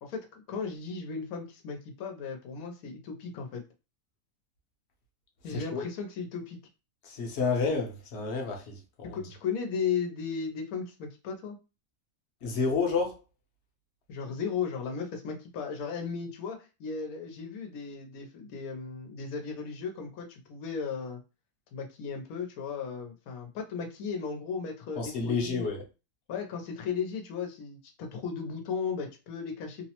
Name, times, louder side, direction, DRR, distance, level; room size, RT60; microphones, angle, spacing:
voice 1, 0.0-3.6 5.4-6.6 9.0-11.6 14.1-21.2 21.7-25.7 26.3-29.8, left 6 dB, 90° left, 1.1 m, -36 dB
voice 2, 5.5-5.8 7.0-9.2 12.4-13.1 25.0-25.8, left 4 dB, 55° left, 0.9 m, -30 dB
3.0 x 2.0 x 2.8 m
omnidirectional pair, 1.5 m